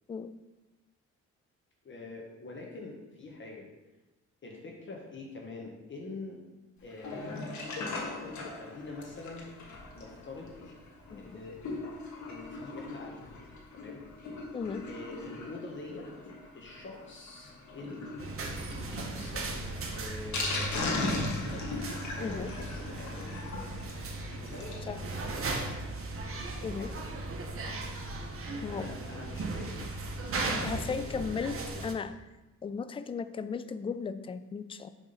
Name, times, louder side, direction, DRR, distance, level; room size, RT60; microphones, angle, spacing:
voice 1, 1.8-3.7 4.4-6.4 6.8-7.5 8.5-9.5 9.9-10.5 11.2-11.6 12.3-14.0 14.9-16.1 16.5-18.2 19.0-19.5 19.9-21.6 22.2-24.0 24.4-25.8 26.3-27.2 28.5-29.9 30.3-31.9, left 3 dB, 40° left, -1 dB, 1.3 m, -45 dB
Sink (filling or washing), 6.9-24.9 25.3-25.4 25.5-25.6 26.0-26.1, left 2 dB, 70° left, 1.5 m, -39 dB
voice 2, 14.5-14.9 22.2-22.5 24.9-25.0 26.6-26.9 28.6-29.0 30.4-32.1 32.6-34.9, left 5 dB, 20° left, 12 dB, 0.3 m, -36 dB
sound 1, 18.2-31.9, right 2 dB, 45° right, 1.1 m, -37 dB
6.8 x 3.6 x 5.5 m, 1.1 s
cardioid pair, 90°, 30 cm